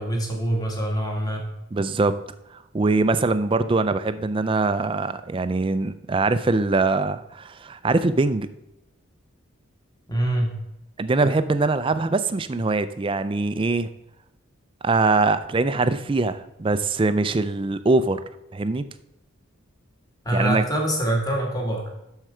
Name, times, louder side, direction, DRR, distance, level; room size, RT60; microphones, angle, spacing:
voice 1, 0.0-1.5 10.1-10.5 20.2-21.9, right 1 dB, 20° left, 1 dB, 1.5 m, -24 dB
voice 2, 1.7-2.1 2.7-8.5 11.0-13.9 14.8-18.2 18.5-18.9 20.3-20.6, right 3 dB, 25° right, 12 dB, 0.4 m, -22 dB
7.6 x 6.6 x 4.9 m, 0.89 s
head